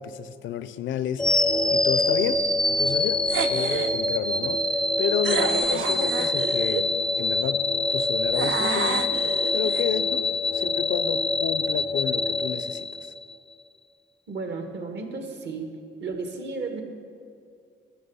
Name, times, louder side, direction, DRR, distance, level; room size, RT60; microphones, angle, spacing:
voice 1, 0.0-6.9 7.2-7.6 7.9-9.1 9.5-10.3 10.5-13.1, left 9 dB, 75° left, 14 dB, 0.5 m, -31 dB
sound 1, 1.2-13.3, left 2 dB, 5° left, 0.4 m, -25 dB
sound 2, 3.3-4.0 5.2-6.9 8.3-9.8, right 8 dB, 75° right, 0.5 m, -30 dB
voice 2, 14.3-15.7 16.0-16.8, right 4 dB, 60° right, 4 dB, 1.5 m, -34 dB
13.0 x 6.3 x 5.5 m, 2.2 s
cardioid pair, 90°, 20 cm